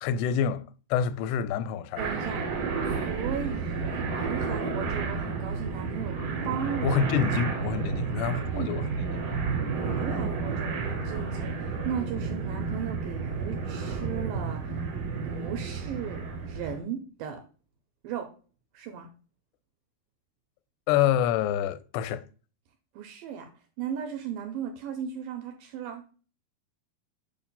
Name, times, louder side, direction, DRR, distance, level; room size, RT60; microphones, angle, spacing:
voice 1, 0.0-2.1 6.8-8.9 20.9-22.3, left 8 dB, 90° left, 2.6 m, -27 dB
sound 1, 2.0-16.8, right 4 dB, 50° right, 2.5 m, -31 dB
voice 2, 2.0-2.5 2.9-6.2 6.4-7.0 8.1-9.1 9.7-14.8 15.2-17.4 18.0-18.3 18.7-19.1 23.0-23.5 23.8-26.0, right 8 dB, 80° right, 2.2 m, -36 dB
7.2 x 2.5 x 5.4 m
omnidirectional pair, 4.6 m